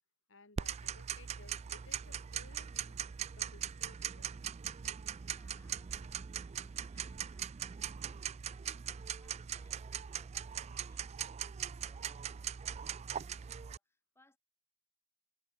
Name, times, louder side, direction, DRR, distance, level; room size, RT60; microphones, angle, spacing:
voice 1, 0.3-3.0 3.3-4.5, left 3 dB, 60° left, 2.3 m, -60 dB
Tick-tock, 0.6-13.8, right 9 dB, 30° right, 0.3 m, -41 dB
voice 2, 5.3-14.4, left 1 dB, 10° left, 5.3 m, -71 dB
head